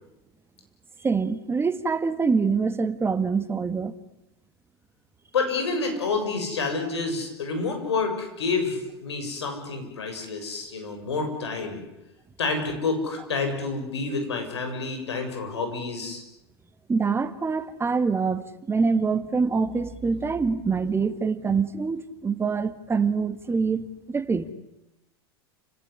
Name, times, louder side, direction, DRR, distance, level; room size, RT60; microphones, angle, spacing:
voice 1, 1.0-4.0 16.9-24.5, right 5 dB, 15° right, 1.8 m, -25 dB
voice 2, 5.3-11.8 12.4-16.2, left 4 dB, 85° left, 7.4 m, -28 dB
29.5 x 18.0 x 9.8 m
hypercardioid pair, 100°, 14 cm